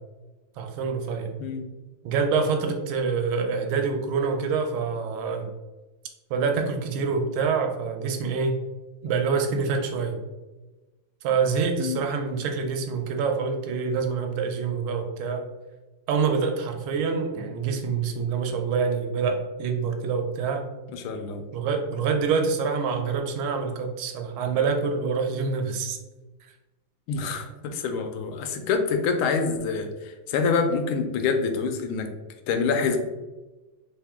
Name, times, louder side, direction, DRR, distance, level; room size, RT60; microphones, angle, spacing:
voice 1, 0.6-1.3 2.0-5.5 6.3-8.6 9.0-10.2 11.2-15.5 16.1-20.7 21.5-26.0, right 5 dB, 80° right, 5 dB, 1.4 m, -26 dB
voice 2, 20.9-21.4 27.1-32.1 32.5-33.0, left 5 dB, 85° left, 6 dB, 1.4 m, -26 dB
3.6 x 2.8 x 3.4 m, 1.1 s
omnidirectional pair, 2.3 m